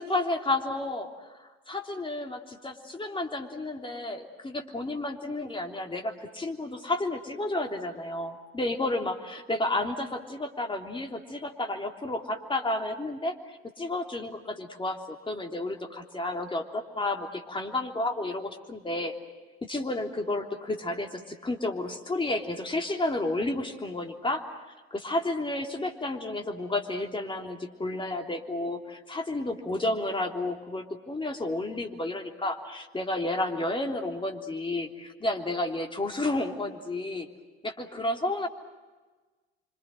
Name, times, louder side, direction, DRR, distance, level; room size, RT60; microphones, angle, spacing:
voice 1, 0.0-19.1 19.6-24.4 24.9-37.3 37.6-38.5, left 2 dB, 15° left, 3 dB, 3.4 m, -31 dB
26.0 x 26.0 x 7.8 m, 1.3 s
hypercardioid pair, 65°, 30 cm